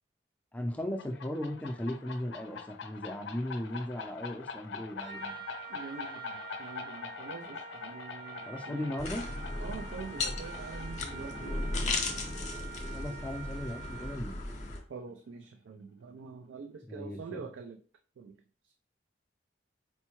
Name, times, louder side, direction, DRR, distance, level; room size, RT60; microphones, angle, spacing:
voice 1, 0.5-5.3 8.5-9.3 12.9-14.4 16.9-17.4, left 1 dB, 10° left, 3 dB, 0.4 m, -37 dB
sound 1, 0.8-14.2, left 5 dB, 80° left, 0.4 m, -45 dB
Trumpet, 5.0-14.3, right 6 dB, 65° right, 1.4 m, -46 dB
voice 2, 5.7-9.0 9.6-12.2 14.9-17.8 18.2-18.4 18.6-18.7, right 5 dB, 90° right, 5 dB, 0.3 m, -45 dB
sound 2, 9.0-14.8, left 3 dB, 40° left, 0.7 m, -36 dB
4.4 x 2.1 x 2.9 m, 0.43 s
head